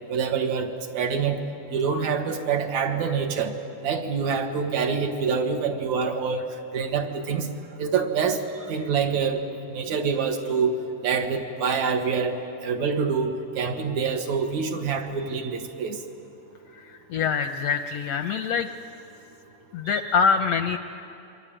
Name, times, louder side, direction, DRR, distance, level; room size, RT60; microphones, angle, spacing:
voice 1, 0.1-1.4 1.7-3.6 3.8-6.5 6.7-7.5 7.8-8.4 8.7-9.4 9.7-10.8 11.0-16.0, right 6 dB, 65° right, 4 dB, 2.8 m, -26 dB
voice 2, 16.7-18.7 19.7-20.8, left 6 dB, 70° left, 7 dB, 1.5 m, -24 dB
28.0 x 23.5 x 8.9 m, 2.7 s
omnidirectional pair, 3.5 m